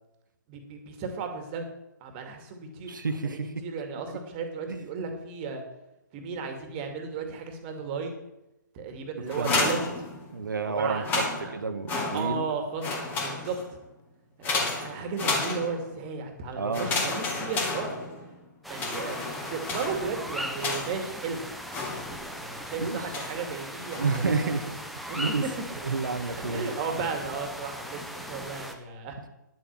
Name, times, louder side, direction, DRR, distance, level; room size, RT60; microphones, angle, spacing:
voice 1, 0.5-1.7 2.0-3.0 3.2-5.6 6.1-8.2 8.7-10.0 10.6-11.1 11.4-11.5 12.1-12.8 13.2-13.6 14.4-14.5 14.8-17.9 18.7-19.2 19.5-21.4 22.1-24.6 25.1-25.6 26.5-29.3, right 5 dB, 30° right, 5 dB, 2.3 m, -34 dB
voice 2, 2.9-3.5 4.7-4.8 9.4-9.6 10.3-11.2 11.5-12.4 16.5-16.9 22.8-23.0 24.0-24.8 25.1-25.4 25.8-26.7, right 4 dB, 75° right, 7 dB, 1.4 m, -29 dB
sound 1, 9.3-10.5 10.9-12.5 12.8-13.8 14.4-16.0 16.7-18.4 18.7-21.1 21.7-22.4 23.1-23.5 23.9-24.4, left 3 dB, 20° left, 2.4 m, -32 dB
sound 2, 18.6-28.7, equal, ahead, 0.9 m, -39 dB
10.5 x 7.6 x 7.6 m, 0.91 s
figure-of-eight pair, 140°, 11 cm